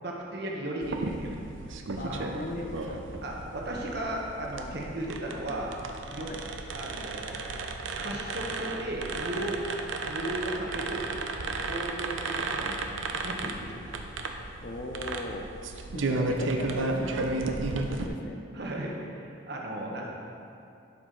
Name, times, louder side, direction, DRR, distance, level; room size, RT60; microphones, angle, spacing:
voice 1, 0.0-1.3 2.0-2.2 3.2-5.7 6.1-6.3 6.7-7.4 8.0-9.6 10.0-11.1 11.6-13.9 18.5-20.1, right 1 dB, 55° right, -2 dB, 1.1 m, -36 dB
sound 1, 0.8-18.1, right 3 dB, 70° right, 0.6 m, -34 dB
voice 2, 2.0-3.0 6.2-6.4 14.6-15.5 15.9-18.4, left 2 dB, 40° left, 3 dB, 0.6 m, -38 dB
11.5 x 4.9 x 3.9 m, 2.6 s
head